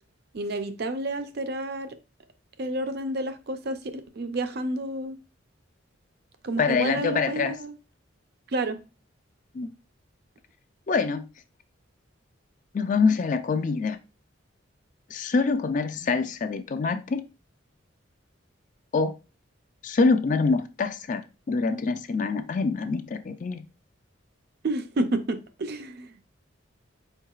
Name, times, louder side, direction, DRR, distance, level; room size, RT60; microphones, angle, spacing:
voice 1, 0.3-1.9 2.6-5.2 6.4-7.8 8.5-8.8 24.6-26.1, right 2 dB, 50° right, 9 dB, 0.5 m, -30 dB
voice 2, 6.6-7.5 9.5-9.7 10.9-11.3 12.7-14.0 15.1-17.2 18.9-19.1 19.8-23.6, left 4 dB, 40° left, 10 dB, 0.3 m, -25 dB
4.5 x 4.5 x 2.4 m, 0.30 s
head